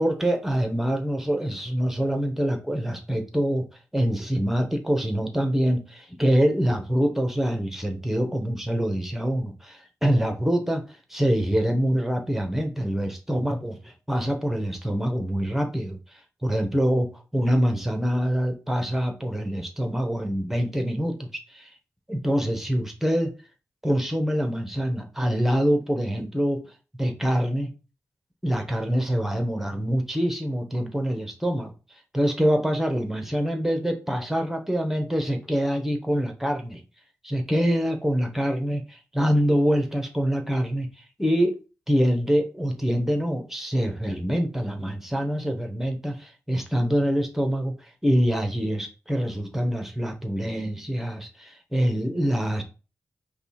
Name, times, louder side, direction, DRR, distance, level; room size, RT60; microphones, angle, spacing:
voice 1, 0.0-3.6 3.9-16.0 16.4-21.2 21.5-21.7 22.1-23.3 23.8-26.6 27.0-27.7 28.4-31.7 32.1-36.8 37.2-41.6 41.9-47.7 48.0-52.6, equal, 5° right, 4 dB, 1.0 m, -25 dB
5.2 x 2.4 x 4.2 m, 0.32 s
cardioid pair, 65°, 6 cm